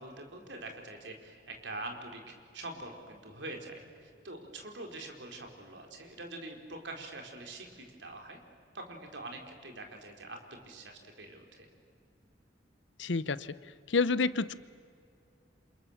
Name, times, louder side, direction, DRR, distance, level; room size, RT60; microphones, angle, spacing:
voice 1, 0.0-8.4 8.7-11.7, right 2 dB, 70° right, 3 dB, 4.2 m, -44 dB
voice 2, 13.0-13.5 13.9-14.5, left 4 dB, 80° left, 16 dB, 0.8 m, -28 dB
29.5 x 27.0 x 7.3 m, 2.3 s
head